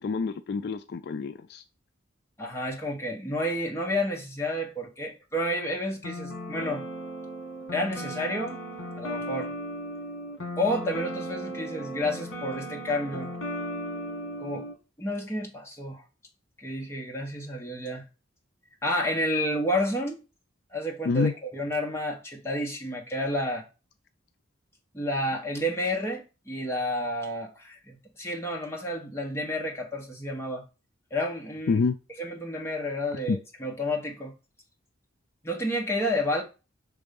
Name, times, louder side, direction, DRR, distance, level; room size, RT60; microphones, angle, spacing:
voice 1, 0.0-1.6 21.1-21.3 31.7-32.0 33.3-33.4, left 5 dB, 55° left, 0.3 m, -27 dB
voice 2, 2.4-6.8 7.7-8.6 9.0-9.5 10.6-13.3 14.4-14.6 15.0-16.0 16.6-18.0 18.8-20.2 20.7-23.6 24.9-30.6 31.1-31.8 32.2-34.3 35.4-36.4, left 1 dB, 15° left, 1.2 m, -30 dB
sound 1, 6.0-14.7, equal, 75° left, 1.5 m, -36 dB
5.4 x 3.5 x 5.2 m
head